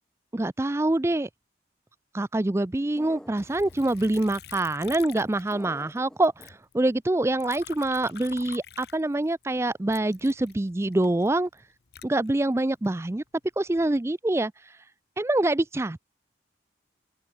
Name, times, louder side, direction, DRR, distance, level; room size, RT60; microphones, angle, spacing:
voice 1, 0.3-1.3 2.1-11.5 12.0-13.2 13.6-14.5 15.2-16.1, right 2 dB, 15° right, 0.4 m, -25 dB
sound 1, 3.0-3.9 5.5-6.5, equal, 5° left, 5.5 m, -46 dB
Liquid, 3.4-6.0 6.2-9.4 9.9-12.9 13.5-14.0, left 8 dB, 60° left, 0.8 m, -46 dB
open air
head